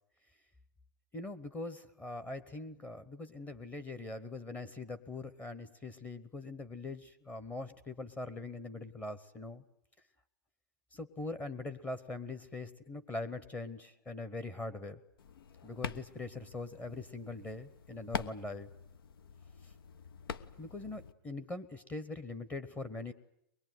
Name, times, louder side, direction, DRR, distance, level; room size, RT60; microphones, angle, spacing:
voice 1, 1.1-9.6 10.9-15.0 15.6-18.7 19.6-19.7 20.6-23.1, left 2 dB, 15° left, 12 dB, 1.0 m, -42 dB
sound 1, 15.2-21.1, left 7 dB, 80° left, 1.2 m, -45 dB
23.5 x 21.0 x 9.3 m, 0.79 s
hypercardioid pair, 145°, 12 cm